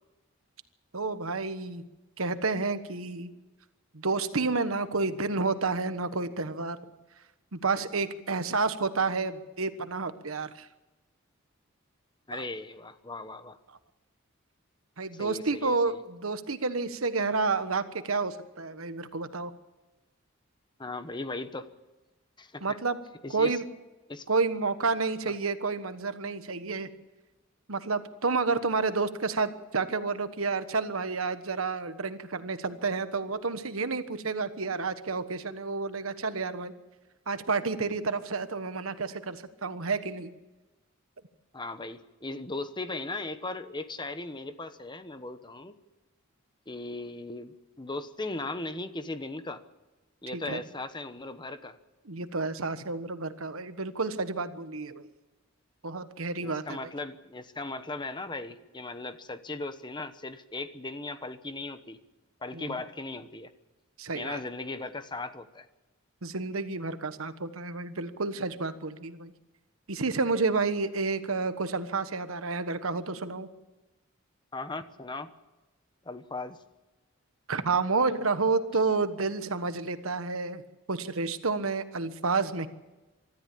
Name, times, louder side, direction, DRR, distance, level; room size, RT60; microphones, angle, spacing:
voice 1, 0.9-1.8 2.2-3.3 3.9-6.8 7.5-10.7 12.3-12.4 15.0-19.5 22.6-23.0 23.3-23.6 24.3-26.9 27.7-36.7 37.3-40.3 50.3-50.6 52.1-55.1 55.8-56.9 62.5-62.8 64.0-64.4 66.2-69.3 69.9-73.5 77.5-80.6 80.9-82.7, right 4 dB, 90° right, 11 dB, 1.3 m, -30 dB
voice 2, 12.3-13.6 15.1-16.0 20.8-21.7 22.4-22.8 23.2-23.6 24.1-24.2 41.5-45.7 46.7-49.6 50.2-51.8 56.4-62.0 62.4-63.5 64.1-65.7 74.5-75.3 76.0-76.6, left 2 dB, 20° left, 10 dB, 1.1 m, -38 dB
24.0 x 13.5 x 8.5 m, 1.1 s
head